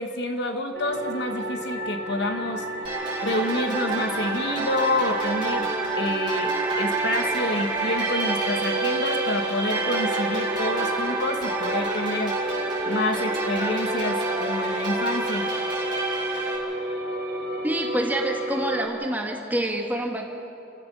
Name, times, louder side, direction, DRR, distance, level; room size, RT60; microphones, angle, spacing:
voice 1, 0.0-2.6 3.2-5.7 6.0-12.3 12.9-15.5, left 1 dB, 60° left, 5 dB, 1.4 m, -28 dB
sound 1, 0.7-18.9, right 1 dB, 50° right, 2.9 m, -31 dB
sound 2, 2.8-16.6, right 3 dB, 25° right, 5.3 m, -28 dB
voice 2, 17.6-20.3, right 1 dB, 10° right, 1 dB, 1.9 m, -27 dB
30.0 x 15.0 x 6.2 m, 2.8 s
head